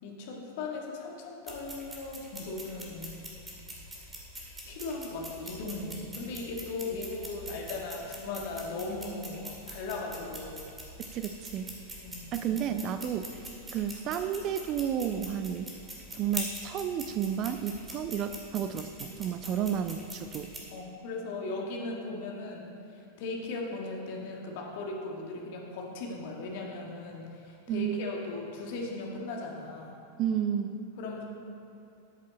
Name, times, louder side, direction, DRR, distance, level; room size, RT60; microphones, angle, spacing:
voice 1, 0.0-3.2 4.7-10.6 12.0-12.3 19.5-19.7 20.7-30.0 31.0-31.2, left 3 dB, 50° left, -1 dB, 1.7 m, -38 dB
sound 1, 1.5-20.6, right 1 dB, 10° right, 2.1 m, -44 dB
voice 2, 11.1-11.7 12.3-13.4 13.7-15.7 16.1-20.5 27.7-28.0 30.2-30.8, right 9 dB, 35° right, 10 dB, 0.4 m, -32 dB
12.5 x 7.4 x 4.2 m, 2.6 s
figure-of-eight pair, 90°, 0 cm